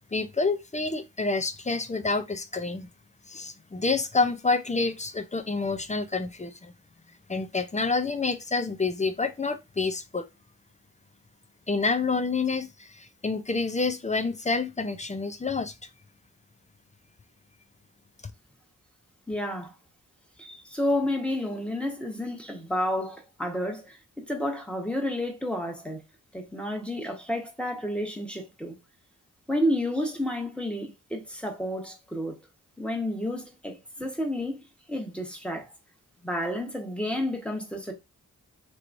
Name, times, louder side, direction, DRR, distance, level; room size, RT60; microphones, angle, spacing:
voice 1, 0.1-2.9 3.3-6.7 7.3-10.3 11.7-15.7, left 4 dB, 20° left, 0.5 m, -28 dB
voice 2, 19.3-19.7 20.4-26.0 26.3-28.8 29.5-32.4 32.8-35.7 36.2-37.9, left 1 dB, 5° left, 1.2 m, -30 dB
3.1 x 2.9 x 2.5 m
cardioid pair, 45°, 34 cm